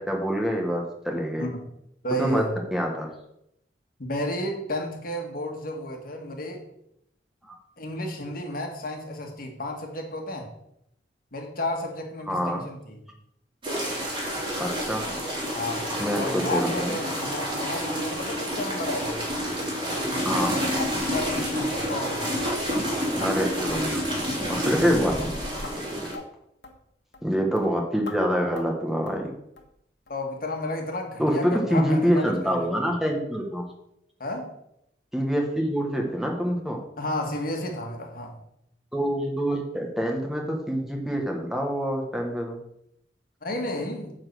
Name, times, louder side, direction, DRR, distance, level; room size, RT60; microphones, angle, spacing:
voice 1, 0.1-1.5 2.2-2.4 2.7-3.1 7.5-7.6 12.3-12.6 14.6-15.0 16.0-16.9 20.2-20.6 23.2-24.0 24.5-25.3 27.2-29.3 31.2-33.6 35.1-36.8 38.9-42.6, equal, ahead, 1 dB, 1.2 m, -26 dB
voice 2, 2.0-2.5 4.0-6.6 7.8-10.5 11.3-13.0 15.5-15.9 16.2-19.2 21.1-22.4 30.1-32.8 34.2-34.5 37.0-38.4 43.4-44.1, left 1 dB, 55° left, 2 dB, 1.6 m, -32 dB
sound 1, 13.6-26.1, equal, 30° right, 3.0 m, -29 dB
sound 2, 18.9-19.0 19.4-19.5 19.9-20.0 20.3-20.4 20.8-20.9 21.3-21.4 21.8-22.0 22.3-22.4 22.7-23.3 23.7-23.9 24.2-24.4 24.7-24.9 25.1-25.3 25.6-25.8 26.1-26.3 26.6-26.8 27.1-27.3 27.6-27.7 28.1-28.2 28.6-28.8 29.1-29.2 29.6-29.7 30.1-30.2 30.6-30.7 31.1-31.2, left 3 dB, 75° left, 1.4 m, -41 dB
9.6 x 4.0 x 6.8 m, 0.78 s
head